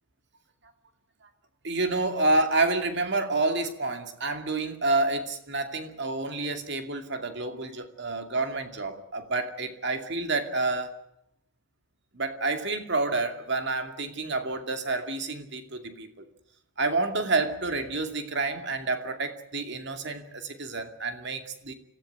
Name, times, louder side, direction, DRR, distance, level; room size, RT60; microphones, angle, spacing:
voice 1, 1.6-10.9 12.1-16.2 16.8-21.7, right 3 dB, 50° right, 6 dB, 2.4 m, -29 dB
26.0 x 15.0 x 9.3 m, 0.81 s
head